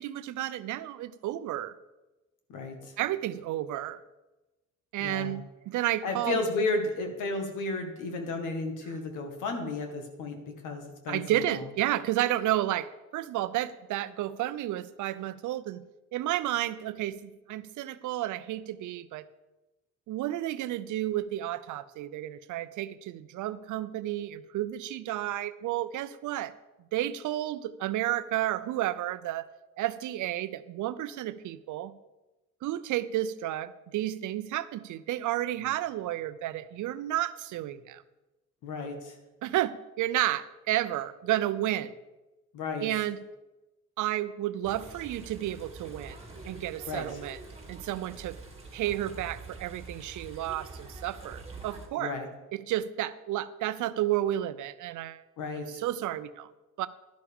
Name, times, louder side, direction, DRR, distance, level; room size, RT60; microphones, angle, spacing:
voice 1, 0.0-1.8 3.0-4.0 4.9-6.4 8.9-9.0 11.1-15.8 16.1-19.2 20.1-26.5 26.9-29.4 29.8-31.9 32.6-38.0 39.4-41.9 42.8-43.2 44.0-46.2 46.5-47.4 47.7-48.4 48.7-52.1 52.5-55.2 55.8-56.5 56.8-56.9, right 13 dB, 80° right, 15 dB, 0.6 m, -31 dB
voice 2, 2.5-2.9 5.0-5.4 6.0-11.6 38.6-39.2 42.5-42.9 46.9-47.1 52.0-52.3 55.4-55.8, left 3 dB, 90° left, 4 dB, 1.8 m, -33 dB
sound 1, 44.6-51.9, right 3 dB, 20° right, 2.2 m, -46 dB
11.5 x 11.5 x 3.6 m, 1.1 s
cardioid pair, 90°, 30 cm